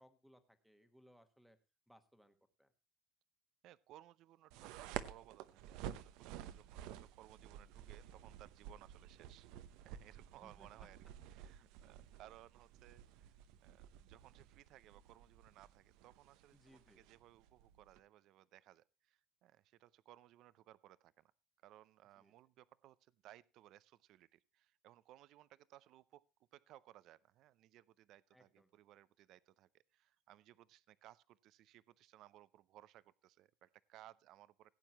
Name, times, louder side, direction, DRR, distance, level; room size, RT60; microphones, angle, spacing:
voice 1, 0.0-1.6 1.9-2.7 10.4-10.9 16.5-17.0 22.2-22.3 28.3-28.8, equal, ahead, 1.2 m, -66 dB
voice 2, 3.6-9.5 9.8-11.0 11.3-13.3 13.6-21.3 21.6-34.7, right 14 dB, 50° right, 0.5 m, -62 dB
sound 1, 4.5-18.0, right 11 dB, 70° right, 0.8 m, -52 dB
16.5 x 9.1 x 2.9 m
cardioid pair, 170°, 0 cm